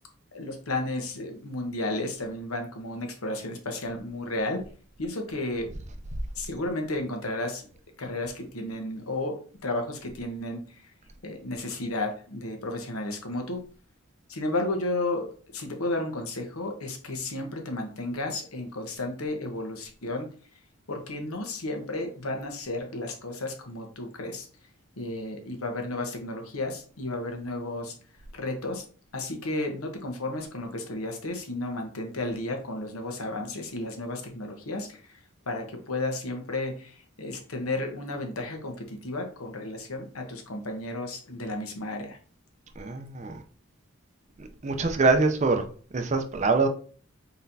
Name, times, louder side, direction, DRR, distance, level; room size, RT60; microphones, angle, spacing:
voice 1, 0.3-4.6 5.0-5.7 6.4-7.7 8.0-10.8 11.2-13.6 14.3-20.3 20.9-24.5 25.0-27.9 28.3-28.8 29.1-42.2, left 2 dB, 90° left, 4 dB, 1.0 m, -33 dB
voice 2, 42.8-43.4 44.4-45.7 45.9-46.7, right 3 dB, 35° right, 6 dB, 0.5 m, -24 dB
4.3 x 4.0 x 2.7 m, 0.42 s
head